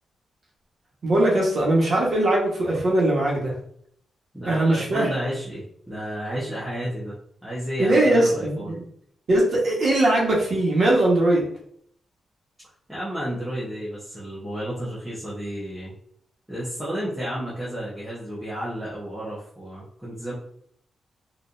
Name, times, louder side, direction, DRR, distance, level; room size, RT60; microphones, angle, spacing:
voice 1, 1.0-3.5 4.4-5.1 7.8-8.8 9.3-11.5, right 1 dB, 55° right, -3 dB, 1.2 m, -20 dB
voice 2, 4.3-7.1 7.4-8.7 12.9-15.9 16.5-20.3, equal, ahead, -11 dB, 1.0 m, -32 dB
4.1 x 2.6 x 2.5 m, 0.66 s
wide cardioid pair, 130°, 0 cm